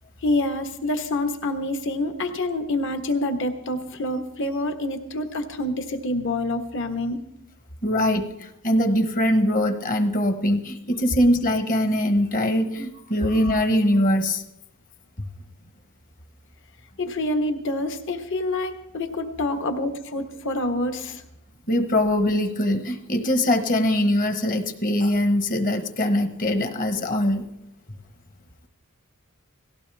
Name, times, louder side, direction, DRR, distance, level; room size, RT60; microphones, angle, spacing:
voice 1, 0.2-7.2 17.0-21.2, left 2 dB, 60° left, 7 dB, 1.4 m, -27 dB
voice 2, 7.8-14.4 21.7-27.4, left 1 dB, 40° left, 8 dB, 1.2 m, -22 dB
18.5 x 15.5 x 3.5 m, 0.82 s
head